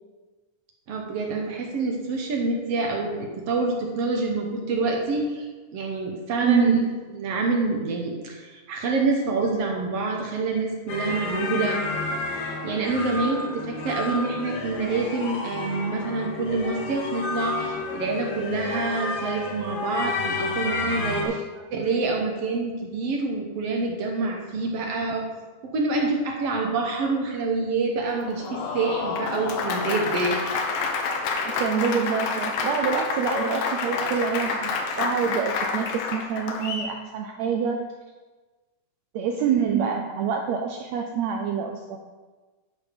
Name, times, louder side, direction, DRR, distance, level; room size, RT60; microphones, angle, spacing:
voice 1, 0.9-6.8 7.1-11.8 12.3-21.3 21.7-25.2 25.6-30.4, right 3 dB, 65° right, 1 dB, 1.7 m, -27 dB
voice 2, 6.4-7.0 21.2-21.7 24.8-24.9 31.4-37.9 39.1-42.0, right 7 dB, 85° right, 4 dB, 1.5 m, -26 dB
sound 1, 10.9-21.2, left 3 dB, 65° left, 2.0 m, -30 dB
Applause, 28.2-36.9, left 4 dB, 85° left, 2.6 m, -28 dB
11.5 x 5.0 x 5.1 m, 1.3 s
omnidirectional pair, 3.8 m